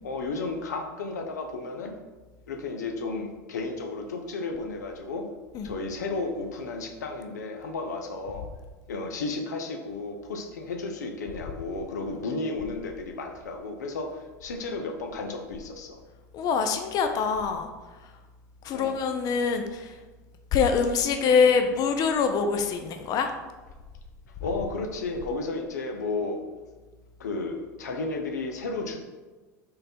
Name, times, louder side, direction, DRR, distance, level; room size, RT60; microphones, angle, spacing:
voice 1, 0.0-1.9 2.5-5.3 5.6-8.5 8.9-16.0 18.7-19.0 24.4-26.4 27.2-29.0, left 3 dB, 85° left, 3 dB, 0.6 m, -33 dB
voice 2, 16.3-17.7 18.6-19.9 20.5-23.3, left 5 dB, 45° left, 6 dB, 0.5 m, -24 dB
3.8 x 3.3 x 4.2 m, 1.2 s
hypercardioid pair, 90°, 9 cm